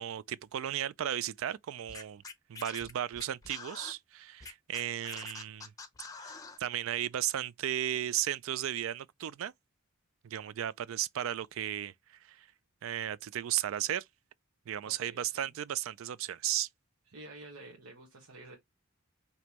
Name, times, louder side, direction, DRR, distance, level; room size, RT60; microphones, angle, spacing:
voice 1, 0.0-2.2 2.5-5.7 6.2-6.3 6.6-9.5 10.2-12.5 12.8-14.0 14.7-16.7, right 11 dB, 65° right, 0.3 m, -35 dB
Scratching (performance technique), 1.9-3.9 4.4-6.6, left 4 dB, 15° left, 0.6 m, -45 dB
voice 2, 14.8-15.5 17.1-18.6, right 2 dB, 85° right, 1.1 m, -50 dB
5.2 x 2.9 x 3.0 m
head